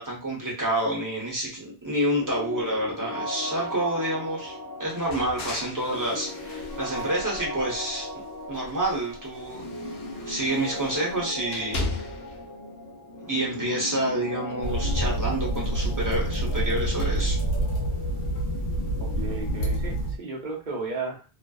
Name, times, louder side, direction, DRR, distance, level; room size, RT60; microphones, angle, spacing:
voice 1, 0.0-8.1 8.5-9.7 10.2-11.9 13.3-17.4, right 1 dB, 20° right, -4 dB, 0.8 m, -28 dB
sound 1, 2.1-19.7, left 1 dB, 25° left, 0.5 m, -38 dB
sound 2, 4.9-8.1 8.5-12.4, left 2 dB, 90° left, 0.9 m, -38 dB
sound 3, 14.6-20.2, right 1 dB, 65° left, 0.9 m, -27 dB
voice 2, 19.0-21.2, right 3 dB, 55° right, 0 dB, 0.8 m, -34 dB
2.5 x 2.2 x 2.3 m, 0.32 s
omnidirectional pair, 1.0 m